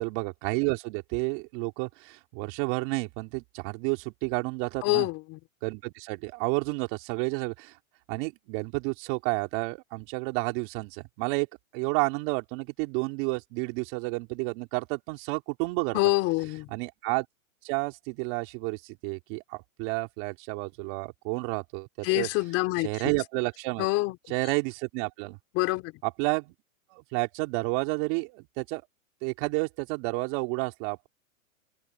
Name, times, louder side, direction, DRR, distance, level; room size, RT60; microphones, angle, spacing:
voice 1, 0.0-5.1 5.6-7.7 8.1-11.5 11.7-16.0 16.7-17.3 17.6-22.3 22.8-23.9 24.3-25.4 26.0-26.5 26.9-28.8 29.2-31.1, right 29 dB, 40° right, 3.8 m, -31 dB
voice 2, 4.8-5.4 15.9-16.7 22.0-23.1 23.8-24.2 25.5-25.9, left 21 dB, 35° left, 4.3 m, -26 dB
hypercardioid pair, 140°, 42 cm